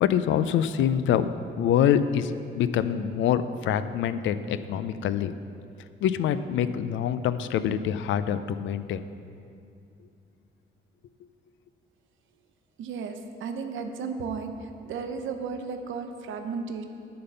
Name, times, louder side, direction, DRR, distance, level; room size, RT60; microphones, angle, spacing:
voice 1, 0.0-5.3 6.0-9.0, left 9 dB, 75° left, 12 dB, 0.4 m, -25 dB
voice 2, 12.8-13.1 13.4-14.5 14.9-16.8, right 5 dB, 80° right, 6 dB, 0.7 m, -33 dB
10.0 x 3.9 x 6.8 m, 2.5 s
cardioid pair, 90°, 20 cm